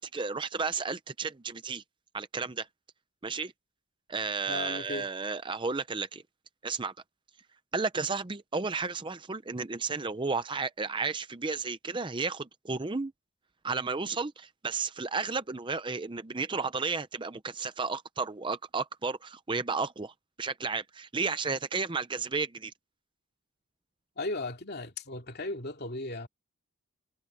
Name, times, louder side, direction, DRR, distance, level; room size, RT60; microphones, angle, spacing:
voice 1, 0.0-1.8 2.1-2.7 3.2-3.5 4.1-6.2 6.6-6.9 7.7-13.1 13.6-22.7, right 4 dB, 20° right, 0.6 m, -33 dB
voice 2, 4.5-5.1 24.2-26.3, left 2 dB, 45° left, 2.8 m, -36 dB
head